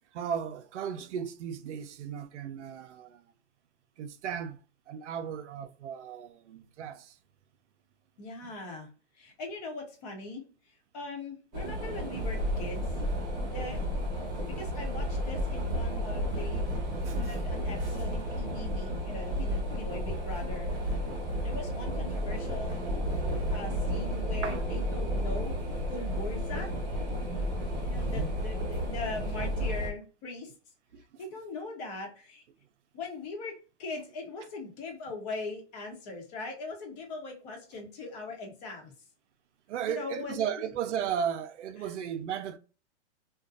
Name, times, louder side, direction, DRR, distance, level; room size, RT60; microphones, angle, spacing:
voice 1, 0.1-3.2 4.0-4.6 4.9-7.2 8.4-8.5 17.0-17.3 21.3-21.5 24.4-24.6 27.6-28.3 30.9-31.0 39.7-42.6, right 8 dB, 80° right, 0.5 m, -36 dB
voice 2, 8.2-8.9 9.1-12.8 13.4-13.8 14.6-16.7 17.1-20.7 21.4-22.8 23.5-25.5 25.9-26.7 27.9-30.5 31.2-32.4 32.9-38.9 39.9-40.7 41.8-41.9, left 3 dB, 35° left, 0.9 m, -40 dB
sound 1, 11.5-29.9, equal, 20° right, 0.8 m, -32 dB
2.5 x 2.2 x 2.5 m
hypercardioid pair, 150°, 35 cm